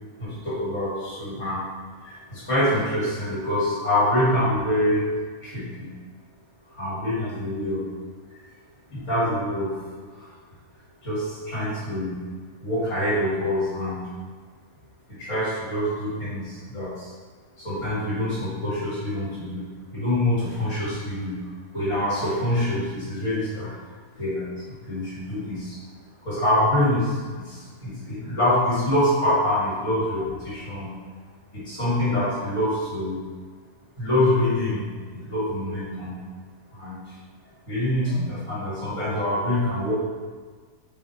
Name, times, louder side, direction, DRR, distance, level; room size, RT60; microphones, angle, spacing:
voice 1, 0.2-1.7 2.0-5.1 5.4-5.9 6.7-7.9 8.3-8.4 8.9-9.8 10.1-10.3 11.0-12.2 12.6-14.1 15.1-17.1 17.6-23.8 24.2-25.9 26.2-31.0 31.5-33.2 34.0-34.9 35.1-36.2 36.7-37.2 37.7-40.0, left 1 dB, 50° left, -9 dB, 2.3 m, -25 dB
7.3 x 4.2 x 4.3 m, 1.5 s
omnidirectional pair, 1.6 m